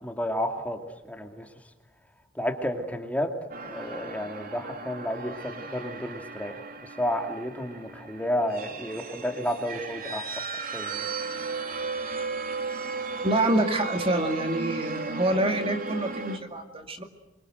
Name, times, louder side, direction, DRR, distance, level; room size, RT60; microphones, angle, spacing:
voice 1, 0.0-1.5 2.3-3.3 3.6-6.7 7.0-10.4 10.7-11.1, equal, 10° left, 4 dB, 2.5 m, -31 dB
sound 1, 3.5-16.4, right 4 dB, 50° right, 3.0 m, -35 dB
voice 2, 13.2-17.0, right 1 dB, 30° right, 5 dB, 2.3 m, -26 dB
27.5 x 24.0 x 7.9 m, 1.0 s
head